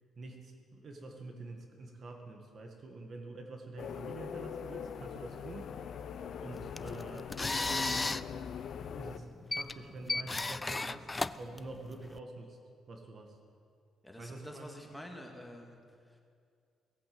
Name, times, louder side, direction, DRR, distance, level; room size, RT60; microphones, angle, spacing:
voice 1, 0.2-5.7 6.4-8.3 9.0-11.1 11.4-12.6 12.9-13.4 14.2-14.8, right 2 dB, 50° right, 3 dB, 1.9 m, -47 dB
sound 1, 3.8-9.2, left 8 dB, 65° left, 0.7 m, -42 dB
sound 2, 6.5-12.2, left 3 dB, 20° left, 0.4 m, -36 dB
voice 2, 14.0-15.8 16.1-16.2, equal, 5° left, 1 dB, 2.2 m, -48 dB
17.5 x 8.6 x 7.9 m, 2.3 s
cardioid pair, 90°, 0 cm